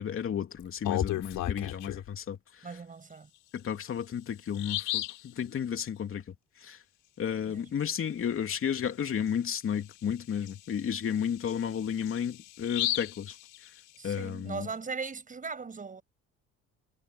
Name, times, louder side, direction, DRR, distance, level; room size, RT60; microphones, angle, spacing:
voice 1, 0.0-2.4 3.5-6.2 6.6-6.8 7.2-13.3 14.0-14.7, left 8 dB, 45° left, 3.0 m, -32 dB
Bird vocalization bird call bird song, 0.6-2.1 3.6-3.7 4.1-4.2 4.5-5.3 8.7-8.9 9.3-9.4 9.9-14.1, left 14 dB, 75° left, 7.0 m, -35 dB
voice 2, 2.6-3.3 7.5-7.7 14.0-16.0, right 5 dB, 25° right, 6.9 m, -39 dB
cardioid pair, 115°, 31 cm